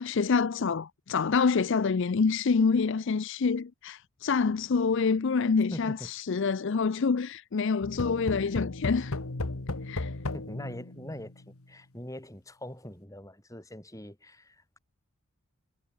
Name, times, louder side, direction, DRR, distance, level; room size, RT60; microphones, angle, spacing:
voice 1, 0.0-9.1 9.9-10.1, left 5 dB, 55° left, 0.5 m, -27 dB
voice 2, 5.7-6.1 10.3-14.8, equal, 15° left, 5.2 m, -42 dB
sound 1, 7.8-11.5, left 2 dB, 80° left, 1.5 m, -35 dB
head